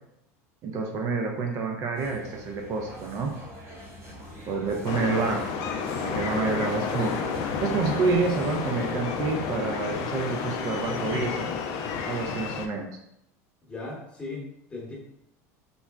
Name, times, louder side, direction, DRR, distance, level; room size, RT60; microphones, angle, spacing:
voice 1, 0.6-3.3 4.5-5.6 6.0-7.2 7.6-11.5 12.0-12.9, right 4 dB, 45° right, 2 dB, 0.4 m, -28 dB
sound 1, 1.9-9.3, equal, 85° right, 1.5 m, -42 dB
voice 2, 4.4-5.0 6.1-6.5 13.6-14.9, left 3 dB, 15° left, -3 dB, 1.0 m, -39 dB
sound 2, 4.8-12.7, left 5 dB, 55° left, 0.4 m, -31 dB
3.7 x 2.0 x 2.3 m, 0.79 s
supercardioid pair, 115°, 8 cm